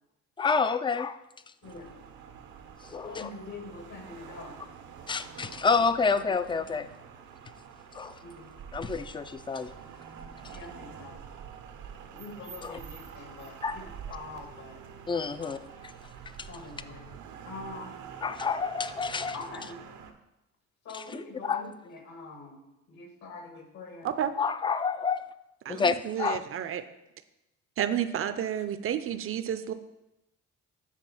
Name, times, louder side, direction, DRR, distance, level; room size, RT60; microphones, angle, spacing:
voice 1, 0.4-1.2 2.9-3.3 5.1-6.9 7.9-8.2 8.7-9.7 12.6-12.8 13.6-13.8 15.1-15.6 16.4-16.5 18.2-19.3 20.9-21.2 21.5-21.6 24.4-25.3 25.7-26.4, left 5 dB, 15° left, 13 dB, 0.3 m, -28 dB
voice 2, 1.6-2.0 3.1-4.6 6.3-6.9 8.2-8.7 10.5-11.2 12.1-14.8 15.1-15.7 16.5-17.9 19.3-19.8 20.8-22.6 22.9-24.1 26.7-26.8, left 3 dB, 70° left, 3 dB, 1.8 m, -45 dB
sound 1, 1.6-20.1, right 7 dB, 75° right, 0.8 m, -46 dB
voice 3, 25.6-26.8 27.8-29.7, right 9 dB, 45° right, 10 dB, 0.5 m, -31 dB
7.4 x 3.7 x 5.7 m, 0.92 s
cardioid pair, 90°, 30 cm